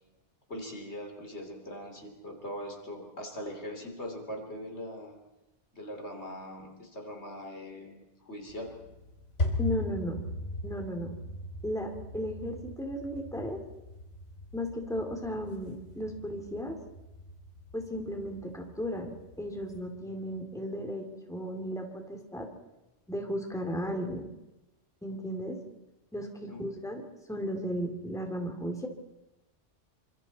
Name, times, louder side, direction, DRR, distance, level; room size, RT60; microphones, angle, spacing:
voice 1, 0.5-5.2 5.7-8.7 26.5-26.6, equal, 70° left, 3 dB, 3.7 m, -41 dB
sound 1, 8.5-19.9, left 1 dB, 90° left, 3.8 m, -39 dB
voice 2, 9.6-10.2 10.6-11.1 11.6-13.6 14.5-16.8 17.7-22.5 23.1-24.3 25.0-25.6 26.1-28.9, equal, 5° left, 3 dB, 2.7 m, -35 dB
28.0 x 25.5 x 4.2 m, 0.96 s
omnidirectional pair, 1.2 m